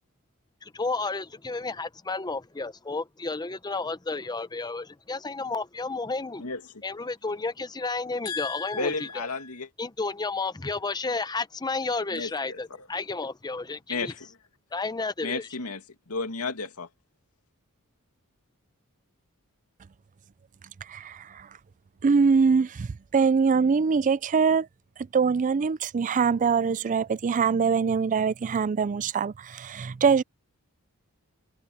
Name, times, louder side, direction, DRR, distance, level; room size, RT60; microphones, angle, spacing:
voice 1, 0.6-6.4 6.8-9.3 9.8-14.1 14.7-15.4, left 3 dB, 20° left, 0.7 m, -32 dB
voice 2, 6.4-6.8 8.2-9.7 12.1-12.9 13.9-14.4 15.2-16.9, left 4 dB, 80° left, 2.5 m, -33 dB
voice 3, 20.9-21.5 22.0-24.7 25.1-30.2, right 5 dB, 35° right, 0.4 m, -23 dB
head